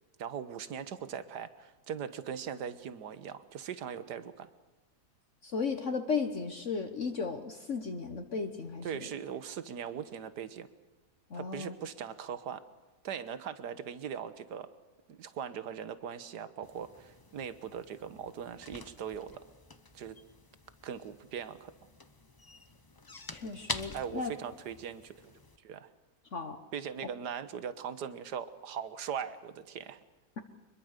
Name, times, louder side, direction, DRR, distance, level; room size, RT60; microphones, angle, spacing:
voice 1, 0.2-4.5 8.8-10.7 11.3-12.6 13.0-14.7 15.1-19.4 19.9-20.2 20.8-21.7 23.9-25.9 26.7-30.0, right 8 dB, 80° right, 13 dB, 1.7 m, -40 dB
voice 2, 5.4-8.9 11.3-11.7 23.3-24.3 26.3-26.6, left 4 dB, 50° left, 7 dB, 1.5 m, -35 dB
sound 1, 16.6-25.6, left 3 dB, 20° left, 0.7 m, -47 dB
24.5 x 22.0 x 6.7 m, 1.2 s
omnidirectional pair, 1.8 m